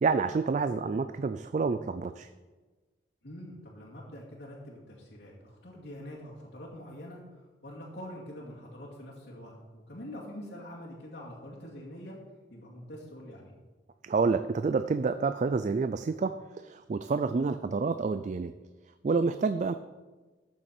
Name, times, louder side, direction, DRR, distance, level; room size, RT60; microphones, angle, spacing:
voice 1, 0.0-2.3 14.0-18.5 19.0-19.7, right 4 dB, 40° right, 11 dB, 0.3 m, -28 dB
voice 2, 3.2-12.2 12.5-13.5, equal, 70° left, -7 dB, 2.4 m, -45 dB
13.0 x 7.4 x 4.4 m, 1.3 s
head